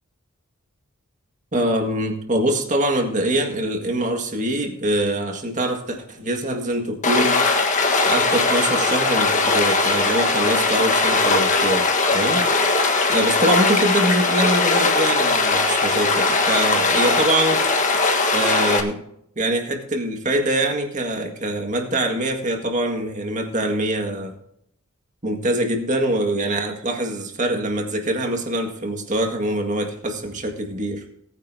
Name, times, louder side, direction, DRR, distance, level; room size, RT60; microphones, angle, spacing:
voice 1, 1.5-7.4 8.1-17.6 18.3-19.0 19.4-24.3 25.2-31.0, right 1 dB, 35° right, 4 dB, 1.9 m, -24 dB
Stream, 7.0-18.8, left 3 dB, 35° left, 1.4 m, -19 dB
19.0 x 9.7 x 2.8 m, 0.70 s
head